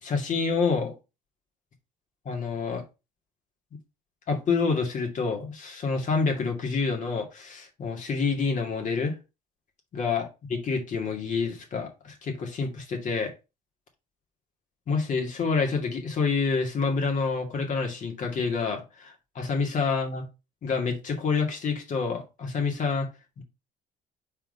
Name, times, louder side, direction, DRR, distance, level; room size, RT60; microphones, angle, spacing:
voice 1, 0.0-0.9 2.3-2.8 4.3-9.1 9.9-13.3 14.9-20.2 20.6-23.1 23.4-23.5, left 4 dB, 50° left, 2 dB, 2.1 m, -28 dB
4.4 x 4.1 x 5.2 m, 0.27 s
cardioid pair, 110°, 17 cm